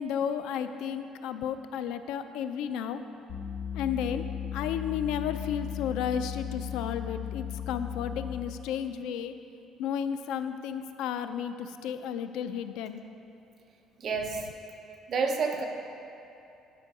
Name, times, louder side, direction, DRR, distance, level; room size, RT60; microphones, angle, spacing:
voice 1, 0.0-3.0 3.7-4.2 4.5-9.3 9.8-13.0, left 8 dB, 85° left, 10 dB, 0.4 m, -33 dB
sound 1, 3.3-8.6, left 10 dB, 40° left, 0.8 m, -36 dB
voice 2, 14.0-14.4 15.1-15.6, right 5 dB, 35° right, 2 dB, 0.7 m, -28 dB
11.0 x 5.2 x 4.7 m, 2.7 s
cardioid pair, 180°, 0 cm